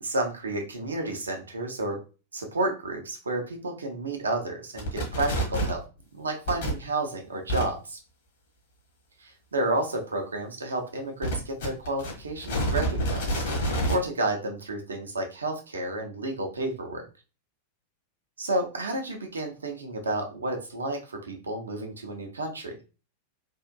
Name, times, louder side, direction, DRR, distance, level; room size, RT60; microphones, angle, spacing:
voice 1, 0.0-2.0 2.3-5.8 6.1-8.0 9.2-17.0 18.4-22.7, right 2 dB, 75° right, 3 dB, 0.7 m, -31 dB
sound 1, 4.8-5.8 6.5-6.7 7.5-7.6 11.2-14.0, right 1 dB, 60° left, 1.5 m, -27 dB
3.6 x 2.5 x 2.2 m, 0.32 s
figure-of-eight pair, 90°, 0 cm